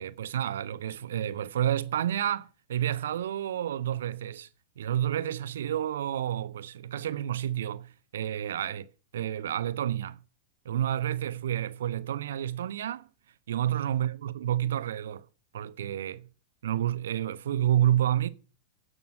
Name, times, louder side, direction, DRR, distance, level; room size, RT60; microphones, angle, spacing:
voice 1, 0.0-4.5 4.8-8.9 9.1-10.2 10.6-13.1 13.5-15.2 15.5-16.2 16.6-18.3, right 11 dB, 60° right, 1.0 m, -29 dB
16.5 x 6.8 x 7.5 m
figure-of-eight pair, 90°, 0 cm